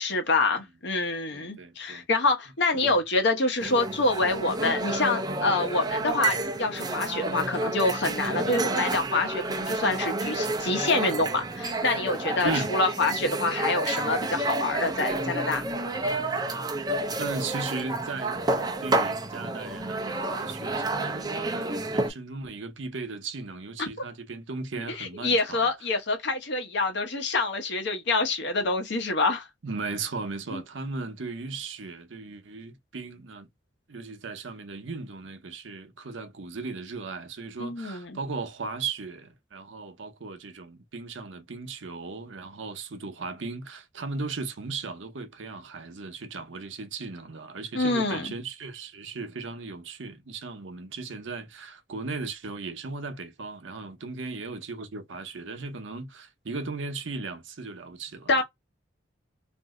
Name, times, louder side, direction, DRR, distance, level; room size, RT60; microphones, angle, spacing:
voice 1, 0.0-15.6 23.8-23.9 25.0-29.5 30.5-30.6 37.6-38.2 47.7-48.3 58.3-58.4, left 3 dB, 65° left, 0.9 m, -26 dB
voice 2, 1.3-2.1 2.8-3.0 12.4-12.8 17.2-25.7 29.6-33.5 33.9-58.4, right 3 dB, 75° right, 0.7 m, -37 dB
sound 1, 3.6-22.1, right 2 dB, 20° right, 0.6 m, -30 dB
2.6 x 2.0 x 3.6 m
head